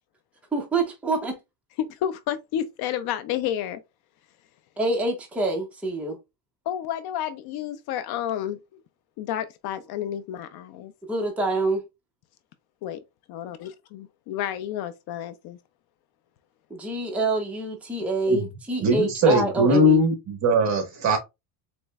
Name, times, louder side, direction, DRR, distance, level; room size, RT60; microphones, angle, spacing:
voice 1, 0.5-1.4 4.8-6.2 11.1-11.8 16.7-20.0, right 2 dB, 5° right, 0.7 m, -26 dB
voice 2, 1.8-3.8 6.7-8.8 9.2-10.9 12.8-13.0 13.3-15.6, left 10 dB, 55° left, 0.5 m, -31 dB
voice 3, 18.8-21.2, right 1 dB, 40° right, 1.3 m, -20 dB
4.2 x 3.0 x 2.2 m
cardioid pair, 145°, 45 cm